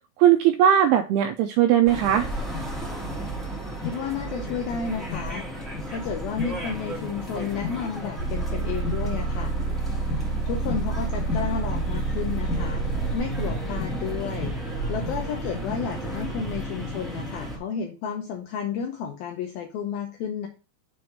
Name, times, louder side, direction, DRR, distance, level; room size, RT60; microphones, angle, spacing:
voice 1, 0.2-2.3, right 10 dB, 85° right, 6 dB, 2.2 m, -19 dB
sound 1, 1.8-17.6, left 1 dB, ahead, 1.5 m, -34 dB
voice 2, 3.8-5.5 5.9-9.5 10.5-12.8 13.1-14.5 14.9-20.5, left 7 dB, 80° left, 4 dB, 2.2 m, -32 dB
sound 2, 8.2-13.2, right 5 dB, 65° right, 2.5 m, -28 dB
sound 3, 12.5-17.6, right 3 dB, 30° right, 1.8 m, -34 dB
6.9 x 4.8 x 5.1 m, 0.35 s
omnidirectional pair, 5.1 m